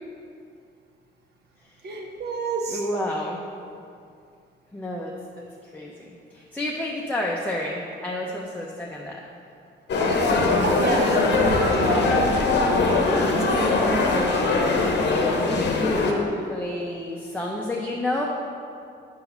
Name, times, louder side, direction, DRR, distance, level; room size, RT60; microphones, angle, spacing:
voice 1, 1.8-2.8 10.6-12.2 13.3-14.5, right 2 dB, 55° right, 1 dB, 1.0 m, -27 dB
voice 2, 2.7-3.4 4.7-5.5 5.7-5.9 6.3-9.2 13.0-13.5 15.4-18.3, left 1 dB, 10° left, -3 dB, 0.6 m, -30 dB
sound 1, 9.9-16.1, left 3 dB, 60° left, 0.8 m, -21 dB
5.2 x 3.9 x 5.7 m, 2.4 s
cardioid pair, 90°, 20 cm